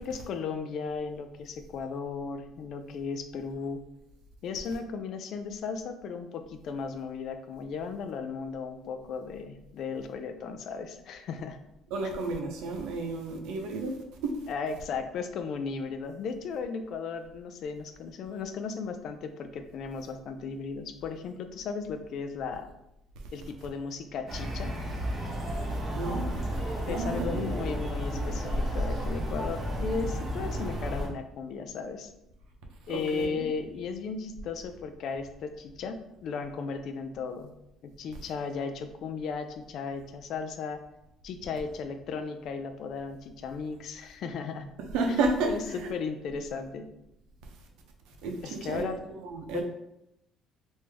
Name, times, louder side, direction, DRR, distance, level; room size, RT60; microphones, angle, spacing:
voice 1, 0.0-3.8 4.4-11.6 14.5-22.7 23.3-24.8 26.8-32.1 32.9-37.5 37.8-40.8 41.2-44.7 45.5-46.9 48.4-49.0 49.5-49.6, left 5 dB, 60° left, 8 dB, 0.4 m, -36 dB
voice 2, 11.9-14.4 25.7-26.3 26.9-27.5 27.8-27.9 32.9-33.5 44.9-46.0 48.2-49.6, right 3 dB, 85° right, 2 dB, 0.6 m, -32 dB
sound 1, 24.3-31.1, equal, 25° right, 1.0 m, -32 dB
3.2 x 2.6 x 3.4 m, 0.85 s
cardioid pair, 125°, 0 cm